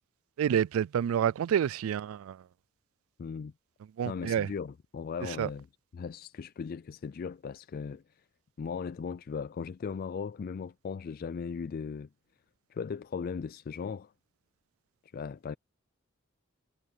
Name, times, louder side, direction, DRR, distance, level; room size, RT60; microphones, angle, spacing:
voice 1, 0.4-2.4 4.0-4.5 5.4-5.5, right 9 dB, 85° right, 0.3 m, -28 dB
voice 2, 3.2-3.5 4.1-5.7 5.9-8.2 8.6-12.1 12.7-14.1 15.0-15.6, left 6 dB, 45° left, 0.3 m, -38 dB
head